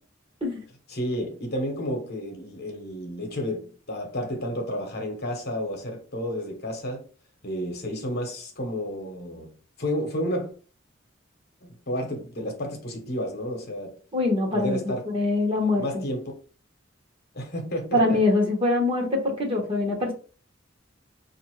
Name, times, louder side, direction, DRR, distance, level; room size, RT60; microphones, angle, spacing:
voice 1, 0.9-7.0 7.4-9.5 9.8-10.5 11.6-14.0 14.5-15.1 15.5-16.3 17.3-18.2, equal, 55° left, 1.0 m, -31 dB
voice 2, 14.1-16.1 17.9-20.1, left 2 dB, 30° right, 1.1 m, -24 dB
5.2 x 2.6 x 3.0 m
head